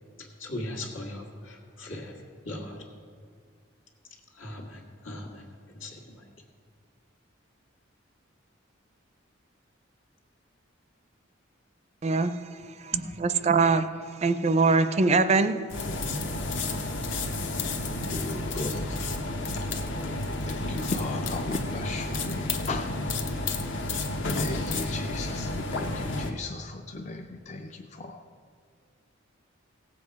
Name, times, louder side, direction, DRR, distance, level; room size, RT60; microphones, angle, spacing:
voice 1, 0.2-2.8 4.3-6.3 12.9-13.1, left 1 dB, 80° left, 0 dB, 1.8 m, -39 dB
voice 2, 12.0-12.3 12.8-12.9 13.2-13.9 14.2-15.6, right 4 dB, 35° right, 11 dB, 0.4 m, -22 dB
sound 1, 15.7-26.3, left 2 dB, 60° left, 0.9 m, -31 dB
voice 3, 18.1-19.1 20.5-22.9 24.4-28.2, left 3 dB, 35° left, 4 dB, 0.4 m, -36 dB
16.5 x 7.6 x 4.7 m, 2.1 s
head